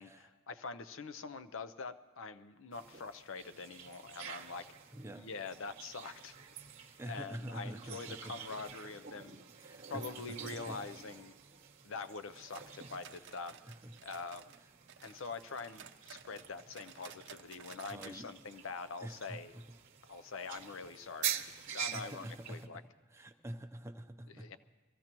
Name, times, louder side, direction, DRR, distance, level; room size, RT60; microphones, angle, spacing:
voice 1, 0.0-4.7 5.1-6.4 6.8-9.4 9.9-11.3 11.8-13.5 14.0-14.4 15.0-19.5 20.1-21.3 21.7-22.8 24.3-24.6, left 4 dB, 65° left, 12 dB, 0.6 m, -44 dB
sound 1, 2.7-22.7, right 9 dB, 40° right, 1.1 m, -47 dB
voice 2, 4.9-5.3 7.0-8.3 9.6-10.0 10.3-10.8 13.2-13.3 13.6-13.9 17.9-18.3 19.0-19.4 20.7-20.8 21.9-22.8 23.1-24.5, right 1 dB, 15° right, 6 dB, 0.7 m, -46 dB
sound 2, 12.3-14.6 14.9-18.2 18.5-18.6 19.0-19.1 19.6-19.7, right 7 dB, 60° right, 0.6 m, -54 dB
23.0 x 15.5 x 3.0 m, 1.2 s
head